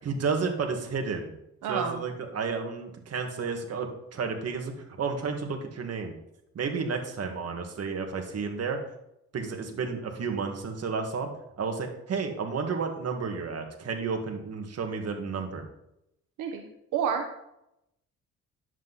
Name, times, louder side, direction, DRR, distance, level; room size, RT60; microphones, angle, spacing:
voice 1, 0.0-1.3 1.7-4.7 5.0-6.1 6.6-8.8 9.3-11.3 11.6-15.6, right 5 dB, 55° right, 4 dB, 1.9 m, -31 dB
voice 2, 1.6-2.0 16.4-17.2, right 7 dB, 85° right, 4 dB, 1.1 m, -29 dB
10.5 x 7.9 x 4.1 m, 0.82 s
cardioid pair, 90°, 30 cm